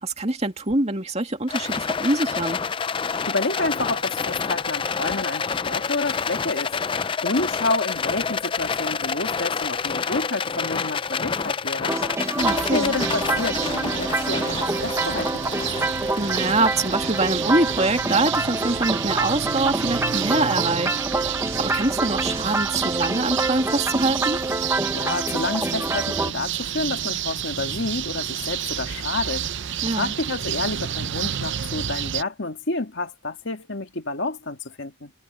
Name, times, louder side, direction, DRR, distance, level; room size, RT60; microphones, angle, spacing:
voice 1, 0.0-2.6 12.4-12.9 16.2-20.9 21.6-24.4 29.8-30.1, right 2 dB, 30° right, 2.4 m, -24 dB
Rattle, 1.5-18.8, left 5 dB, 25° left, 0.4 m, -28 dB
voice 2, 3.3-12.0 12.5-15.7 24.9-35.1, left 3 dB, 55° left, 1.9 m, -29 dB
sound 1, 11.9-26.3, right 2 dB, 10° right, 0.9 m, -27 dB
sound 2, 12.4-32.2, right 10 dB, 55° right, 0.6 m, -30 dB
head